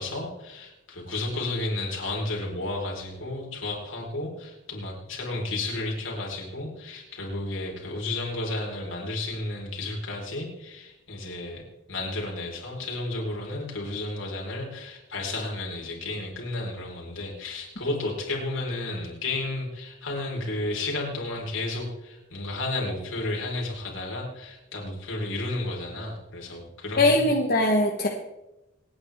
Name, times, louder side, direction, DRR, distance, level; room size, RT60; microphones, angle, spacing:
voice 1, 0.0-11.6 11.9-27.3, left 2 dB, 75° left, -1 dB, 4.4 m, -32 dB
voice 2, 27.0-28.1, left 1 dB, 45° left, 0 dB, 1.3 m, -21 dB
26.5 x 9.6 x 3.6 m, 0.97 s
head